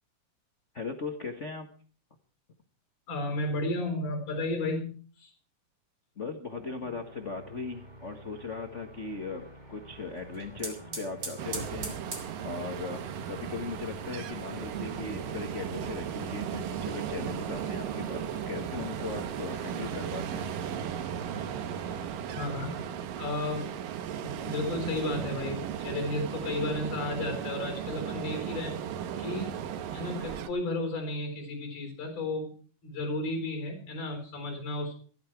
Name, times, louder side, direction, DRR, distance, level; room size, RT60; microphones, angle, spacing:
voice 1, 0.7-1.7 6.2-20.5 20.8-21.0, left 4 dB, 75° left, 5 dB, 0.6 m, -38 dB
voice 2, 3.1-5.3 22.3-22.8 23.2-23.7 24.0-28.8 29.2-29.6 29.9-32.5 32.8-34.9, left 2 dB, 50° left, 4 dB, 5.4 m, -33 dB
sound 1, 6.5-22.9, right 1 dB, 15° right, 3.5 m, -47 dB
sound 2, 10.1-20.7, right 3 dB, 35° right, 3.7 m, -46 dB
Ocean, 11.4-30.5, right 9 dB, 90° right, 2.8 m, -36 dB
17.5 x 13.0 x 4.6 m, 0.42 s
omnidirectional pair, 3.8 m